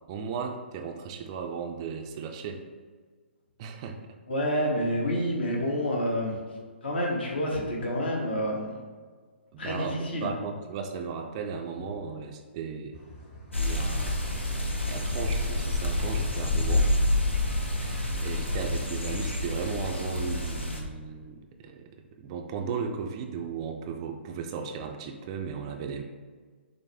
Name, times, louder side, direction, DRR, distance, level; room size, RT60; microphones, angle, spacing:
voice 1, 0.1-2.6 3.6-4.0 9.5-10.0 10.2-13.0 13.6-14.2 14.9-16.9 17.8-21.9 22.2-26.0, right 6 dB, 30° right, 4 dB, 0.3 m, -36 dB
voice 2, 4.3-6.4 6.8-8.8 9.6-10.3, equal, 60° left, -1 dB, 1.1 m, -28 dB
sound 1, 12.9-19.3, equal, 25° left, 0.9 m, -48 dB
sound 2, 13.5-20.8, left 1 dB, 80° left, 0.8 m, -28 dB
6.0 x 2.1 x 3.4 m, 1.5 s
figure-of-eight pair, 130°, 6 cm